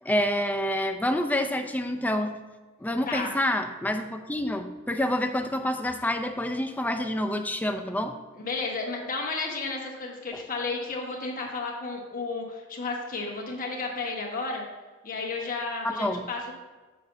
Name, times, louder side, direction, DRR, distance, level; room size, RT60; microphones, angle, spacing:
voice 1, 0.0-2.3 2.8-8.2 10.3-10.4 15.8-16.2, left 1 dB, 10° left, 6 dB, 0.5 m, -28 dB
voice 2, 8.3-14.7 15.0-16.5, left 3 dB, 40° left, 0 dB, 1.3 m, -32 dB
9.2 x 6.9 x 2.7 m, 1.3 s
head